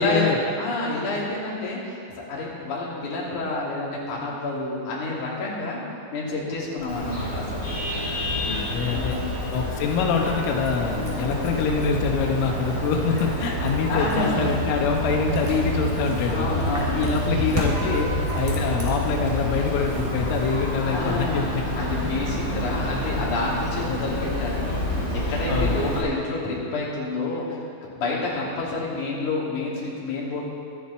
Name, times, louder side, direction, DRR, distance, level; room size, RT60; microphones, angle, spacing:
voice 1, 0.0-0.4 8.5-9.2 9.5-16.5 17.0-21.7 23.0-23.1 25.5-25.9, left 5 dB, 85° left, 2 dB, 3.6 m, -25 dB
voice 2, 0.6-5.8 6.1-7.6 8.9-9.2 11.0-11.6 13.9-14.5 16.3-17.0 20.9-21.5 21.8-25.0 25.3-27.6 28.0-30.4, left 2 dB, 45° left, -5 dB, 3.7 m, -29 dB
sound 1, 6.8-21.3, equal, 5° right, 1.4 m, -38 dB
Vehicle horn car horn honking, 6.9-26.0, equal, 25° left, 3.4 m, -28 dB
24.5 x 9.2 x 4.3 m, 2.4 s
omnidirectional pair, 5.6 m